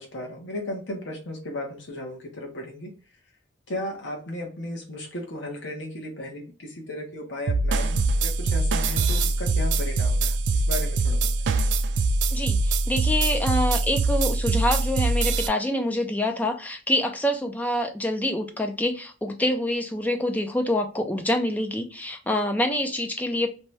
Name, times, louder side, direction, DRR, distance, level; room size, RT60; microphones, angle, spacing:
voice 1, 0.0-2.9 3.7-11.5, left 1 dB, 65° left, 1 dB, 0.8 m, -35 dB
sound 1, 7.5-15.5, right 3 dB, 65° right, 0.3 m, -23 dB
voice 2, 12.3-23.5, left 1 dB, 10° left, 4 dB, 0.4 m, -26 dB
2.7 x 2.2 x 3.1 m, 0.35 s
head